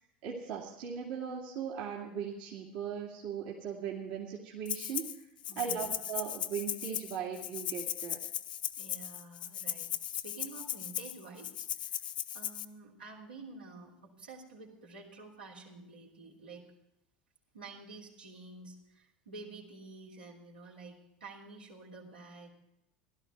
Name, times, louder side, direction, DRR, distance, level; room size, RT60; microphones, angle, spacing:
voice 1, 0.2-5.1 5.6-8.2, right 7 dB, 65° right, -3 dB, 2.2 m, -38 dB
Rattle (instrument), 4.7-5.2 5.4-12.7, left 11 dB, 75° left, 0.6 m, -37 dB
voice 2, 5.5-5.9 8.8-12.1 12.3-16.6 17.5-22.5, right 3 dB, 85° right, -4 dB, 3.2 m, -50 dB
16.0 x 12.5 x 4.5 m, 0.88 s
figure-of-eight pair, 70°, 5 cm